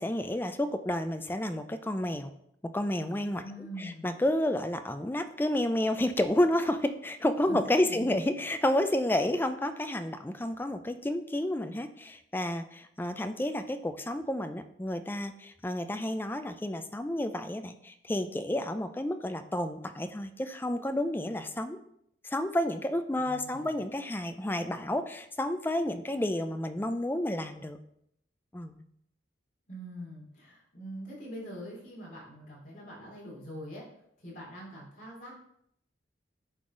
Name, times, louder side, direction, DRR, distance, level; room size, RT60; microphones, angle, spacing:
voice 1, 0.0-2.3 2.7-3.4 4.0-21.8 22.2-27.8 28.5-28.8, left 1 dB, 10° left, 9 dB, 0.4 m, -30 dB
voice 2, 3.4-4.0 7.5-8.1 23.2-23.8 29.7-33.8 34.2-35.3, equal, 45° left, -5 dB, 3.2 m, -43 dB
9.8 x 3.9 x 3.8 m, 0.73 s
head